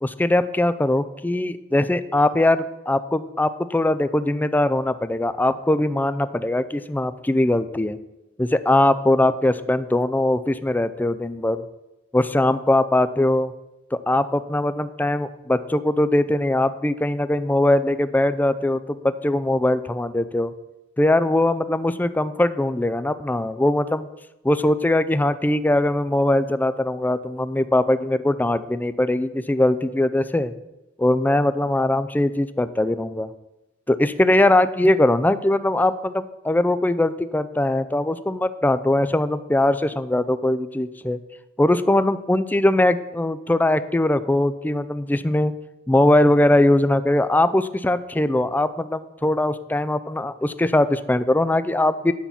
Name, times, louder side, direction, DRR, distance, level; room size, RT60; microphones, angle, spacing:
voice 1, 0.0-8.0 8.4-11.6 12.1-13.5 14.1-20.5 21.0-24.1 24.4-30.5 31.0-33.3 33.9-41.2 41.6-45.5 45.9-52.1, left 1 dB, 10° left, 13 dB, 0.4 m, -21 dB
9.5 x 5.7 x 7.1 m, 0.96 s
head